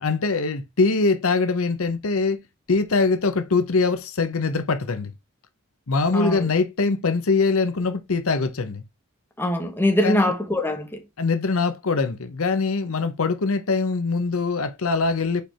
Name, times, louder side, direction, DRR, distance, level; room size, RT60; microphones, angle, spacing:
voice 1, 0.0-2.4 2.7-5.1 5.9-8.8 10.0-10.3 11.2-15.4, left 4 dB, 75° left, 0.8 m, -23 dB
voice 2, 6.1-6.5 9.4-11.0, left 1 dB, 10° left, 1.1 m, -23 dB
5.2 x 4.5 x 4.3 m
head